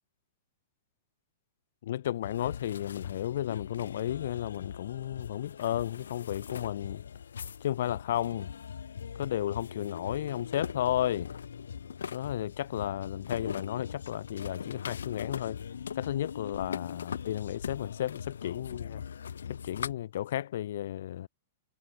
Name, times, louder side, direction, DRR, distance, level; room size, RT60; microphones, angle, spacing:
voice 1, 1.8-7.0 7.6-8.5 9.2-11.3 12.1-15.6 15.9-19.0 19.5-21.3, left 12 dB, 70° left, 2.8 m, -33 dB
sound 1, 2.2-19.9, left 7 dB, 85° left, 1.1 m, -41 dB
hypercardioid pair, 125°, 0 cm